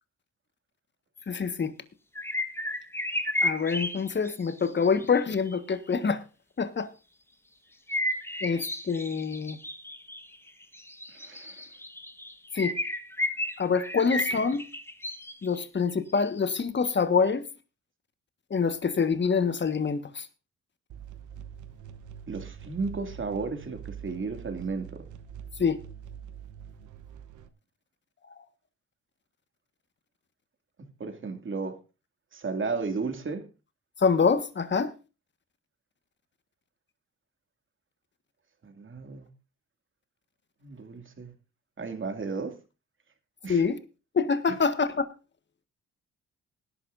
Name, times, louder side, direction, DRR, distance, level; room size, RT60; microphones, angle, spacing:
voice 1, 1.3-1.7 3.4-6.2 6.6-6.9 8.4-9.6 12.5-12.7 13.6-14.6 15.4-17.4 18.5-20.3 25.6-25.8 34.0-34.9 43.5-43.8 44.1-45.1, left 5 dB, 40° left, 1.5 m, -26 dB
sound 1, 2.1-5.6 7.9-15.6 16.1-16.2, left 1 dB, 10° left, 1.5 m, -33 dB
voice 2, 11.1-11.6 22.3-25.0 30.8-31.8 32.3-33.5 38.6-39.3 40.6-41.3 41.8-42.6 43.4-43.6, right 4 dB, 40° right, 2.5 m, -34 dB
sound 2, 20.9-27.5, right 8 dB, 80° right, 1.1 m, -44 dB
19.5 x 11.5 x 2.6 m
cardioid pair, 70°, 29 cm